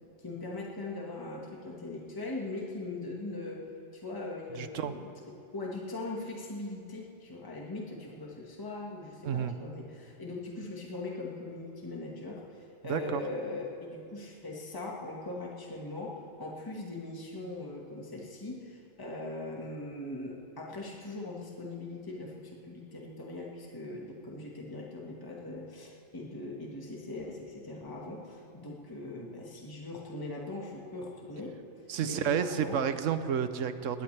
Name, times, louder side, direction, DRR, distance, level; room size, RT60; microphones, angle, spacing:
voice 1, 0.2-3.6 3.9-31.5 32.0-32.8, left 2 dB, 15° left, -2 dB, 1.6 m, -40 dB
voice 2, 4.6-4.9 9.2-9.5 12.8-13.2 31.9-34.0, right 8 dB, 75° right, 11 dB, 1.0 m, -31 dB
20.5 x 17.5 x 3.3 m, 2.5 s
omnidirectional pair, 1.4 m